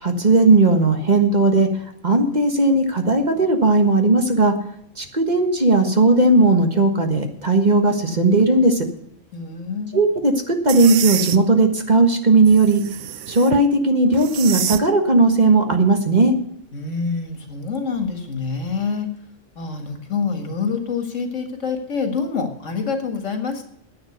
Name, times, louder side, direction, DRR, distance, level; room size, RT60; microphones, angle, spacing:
voice 1, 0.0-1.7 2.0-4.5 5.0-8.8 9.9-12.8 13.3-16.3, right 2 dB, 35° right, 5 dB, 1.5 m, -16 dB
voice 2, 9.3-10.0 16.7-19.1 19.6-23.7, left 5 dB, 85° left, 5 dB, 2.2 m, -26 dB
sound 1, 10.7-11.4 12.5-13.6 14.1-14.8, right 11 dB, 85° right, 1.0 m, -27 dB
10.5 x 8.9 x 7.9 m, 0.75 s
omnidirectional pair, 1.3 m